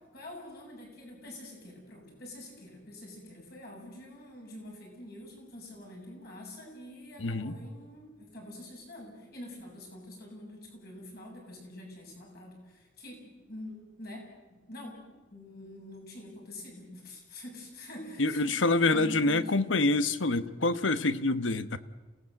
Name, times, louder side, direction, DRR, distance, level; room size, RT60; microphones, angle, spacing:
voice 1, 0.1-15.0 15.3-19.8, left 1 dB, 55° left, 0 dB, 7.6 m, -46 dB
voice 2, 7.2-7.6 18.2-21.8, left 2 dB, 85° left, 14 dB, 1.1 m, -26 dB
28.0 x 18.5 x 7.8 m, 1.2 s
head